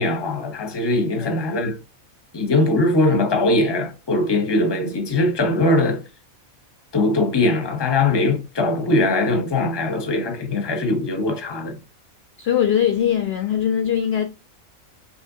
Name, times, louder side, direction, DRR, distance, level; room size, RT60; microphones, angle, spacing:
voice 1, 0.0-1.8 2.3-6.0 6.9-11.8, left 2 dB, 25° left, 0.7 m, -21 dB
voice 2, 12.4-14.3, left 9 dB, 65° left, 0.6 m, -21 dB
5.7 x 3.2 x 2.7 m
omnidirectional pair, 1.5 m